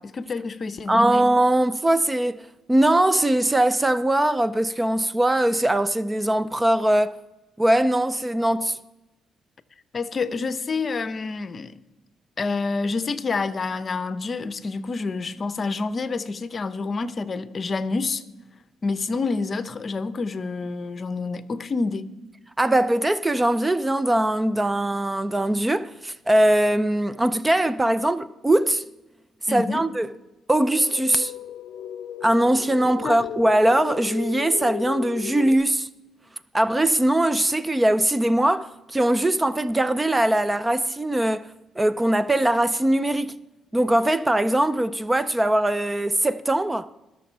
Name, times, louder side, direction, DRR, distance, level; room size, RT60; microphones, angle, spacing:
voice 1, 0.0-1.3 9.9-11.8 12.4-18.2 18.8-22.2 29.5-29.8 32.8-33.2, left 4 dB, 40° left, 0.7 m, -28 dB
voice 2, 0.9-7.1 7.6-8.8 22.6-28.9 29.5-30.1 30.5-31.3 32.2-35.9 36.5-41.5 41.8-43.3 43.7-46.9, right 1 dB, 15° right, 0.4 m, -21 dB
sound 1, 30.6-35.5, left 10 dB, 80° left, 0.6 m, -35 dB
20.5 x 6.8 x 4.5 m
cardioid pair, 90°, 0 cm